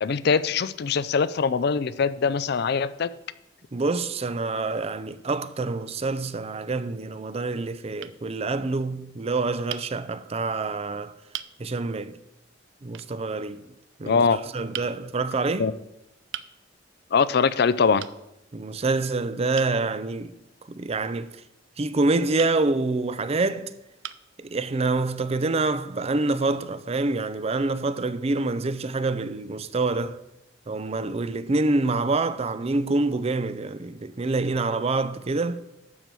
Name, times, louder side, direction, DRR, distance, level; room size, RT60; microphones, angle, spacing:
voice 1, 0.0-3.1 14.0-14.4 15.6-15.7 17.1-18.0, left 5 dB, 60° left, 0.4 m, -22 dB
voice 2, 3.7-11.1 11.6-12.2 12.8-13.6 14.0-15.7 18.5-20.3 20.6-21.4 21.8-23.7 24.4-30.2 30.7-35.6, right 3 dB, 35° right, 0.5 m, -26 dB
sound 1, 8.0-8.2 9.7-9.9 10.7-10.8 11.3-11.5 12.9-13.1 14.7-14.9 16.3-16.5 18.0-18.2 19.5-19.8 22.4-22.6 23.4-23.5 24.0-24.3, right 11 dB, 80° right, 0.5 m, -37 dB
12.0 x 4.7 x 7.5 m
head